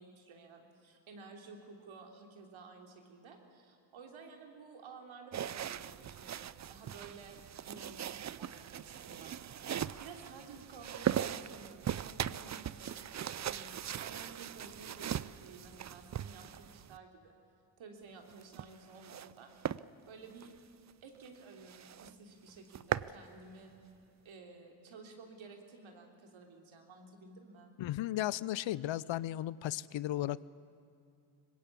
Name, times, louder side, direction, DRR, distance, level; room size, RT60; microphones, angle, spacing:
voice 1, 0.0-7.4 7.6-12.9 13.5-17.3 17.8-19.5 20.1-20.5 21.0-23.7 24.2-27.7, right 4 dB, 75° right, 3 dB, 3.5 m, -53 dB
sound 1, 5.3-17.0 18.3-19.3 19.6-19.8 20.3-20.5 20.9-21.0 21.3-21.4 21.7-22.1 22.5-23.1, right 10 dB, 35° right, 0.5 m, -39 dB
voice 2, 27.8-30.5, left 13 dB, 70° left, 20 dB, 0.7 m, -35 dB
23.0 x 20.0 x 8.5 m, 2.5 s
cardioid pair, 70°, 48 cm